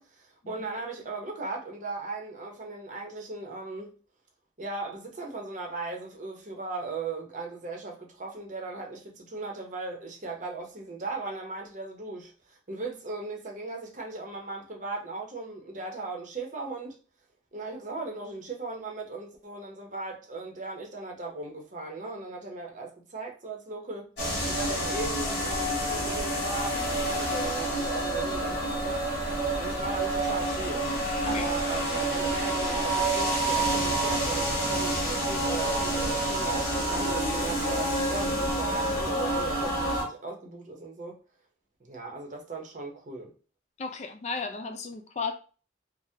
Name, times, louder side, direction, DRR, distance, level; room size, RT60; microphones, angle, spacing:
voice 1, 0.0-4.0 4.6-17.0 17.5-24.1 24.5-29.0 29.6-30.9 31.2-41.2 41.8-43.3, right 3 dB, 45° right, 0.7 m, -38 dB
sound 1, 24.2-40.0, right 1 dB, 60° left, 1.5 m, -28 dB
voice 2, 43.8-45.3, left 4 dB, 35° left, 0.3 m, -34 dB
3.4 x 2.1 x 2.7 m
head